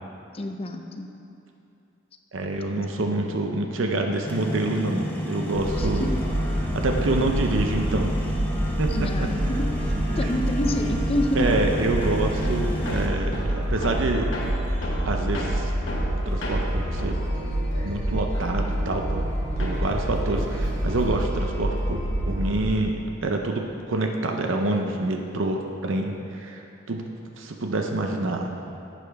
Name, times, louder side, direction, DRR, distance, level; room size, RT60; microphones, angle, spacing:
voice 1, 0.3-1.1 2.7-2.8 5.8-6.2 8.9-9.9 10.2-11.5, left 1 dB, 30° left, 5 dB, 0.6 m, -28 dB
voice 2, 2.3-6.1 6.7-8.2 8.8-9.3 11.3-14.3 15.0-15.7 16.3-17.2 17.8-19.3 19.6-27.1 27.4-28.5, right 2 dB, 65° right, 3 dB, 0.6 m, -27 dB
sound 1, 4.3-13.1, left 1 dB, 10° left, 0.9 m, -31 dB
sound 2, 5.5-22.6, right 1 dB, 35° right, 1.9 m, -27 dB
Hammer, 12.0-19.3 19.6-21.4, left 1 dB, 65° left, 1.3 m, -36 dB
11.5 x 8.5 x 3.4 m, 2.7 s
head